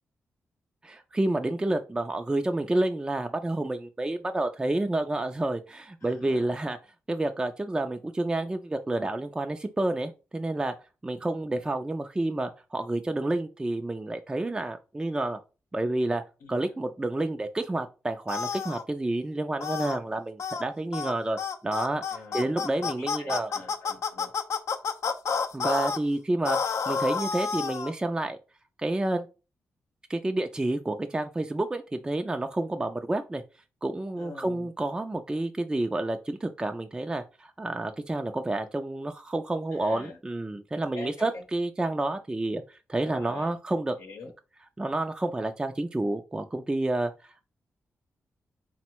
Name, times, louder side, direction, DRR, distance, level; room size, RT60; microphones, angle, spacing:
voice 1, 0.8-6.8 7.1-10.7 11.0-15.4 15.7-16.2 16.5-22.0 22.3-23.5 25.5-28.4 28.8-29.3 30.1-33.4 33.8-43.9 44.8-47.5, right 2 dB, 15° right, 0.4 m, -29 dB
voice 2, 6.0-6.6 16.4-16.5 22.1-24.3 34.2-34.7 39.7-40.2 40.9-41.4 42.9-43.5 44.0-44.3, left 3 dB, 90° left, 0.8 m, -45 dB
sound 1, 18.3-18.8 19.6-20.0 20.4-20.6 20.9-21.1 21.4-26.0 26.4-27.9, left 6 dB, 70° left, 0.5 m, -30 dB
3.6 x 2.1 x 4.4 m
cardioid pair, 70°, 5 cm